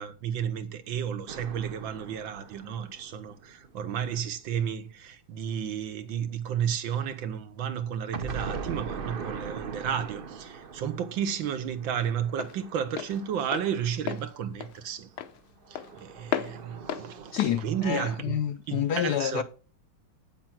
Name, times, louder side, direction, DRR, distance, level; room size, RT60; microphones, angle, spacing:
voice 1, 0.0-15.1 15.7-18.2 18.7-19.4, right 8 dB, 75° right, 1.8 m, -32 dB
sound 1, 1.3-4.1 8.1-14.4 15.6-18.1, right 5 dB, 45° right, 0.7 m, -41 dB
Walk footsteps, 10.1-18.8, left 10 dB, 85° left, 1.7 m, -38 dB
voice 2, 17.3-19.4, left 10 dB, 70° left, 1.0 m, -28 dB
8.8 x 7.4 x 6.0 m
omnidirectional pair, 2.1 m